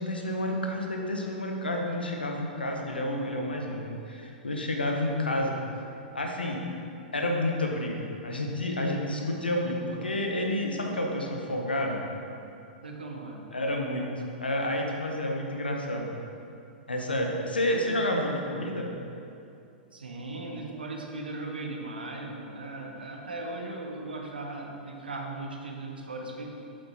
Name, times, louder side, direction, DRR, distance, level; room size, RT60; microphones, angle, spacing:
voice 1, 0.0-5.6 6.1-6.6 7.1-12.0 13.5-14.1 14.4-16.1 16.9-18.9, left 1 dB, 80° left, 1 dB, 1.0 m, -30 dB
voice 2, 12.8-13.4 19.9-26.5, right 2 dB, 75° right, 1 dB, 1.1 m, -38 dB
7.9 x 7.9 x 2.9 m, 2.6 s
figure-of-eight pair, 100°, 5 cm